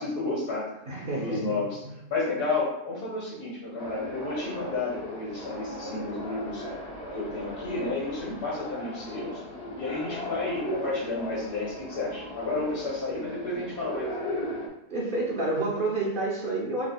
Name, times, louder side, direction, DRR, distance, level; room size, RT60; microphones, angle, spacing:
voice 1, 0.0-0.8 1.1-1.8 2.1-6.6 7.1-9.4 9.8-14.1, left 3 dB, 85° left, -5 dB, 1.9 m, -31 dB
voice 2, 0.9-1.9 14.9-16.9, right 2 dB, 45° right, -4 dB, 0.9 m, -29 dB
sound 1, 3.8-14.7, equal, 50° left, 1.1 m, -37 dB
4.3 x 3.7 x 2.3 m, 0.87 s
omnidirectional pair, 1.5 m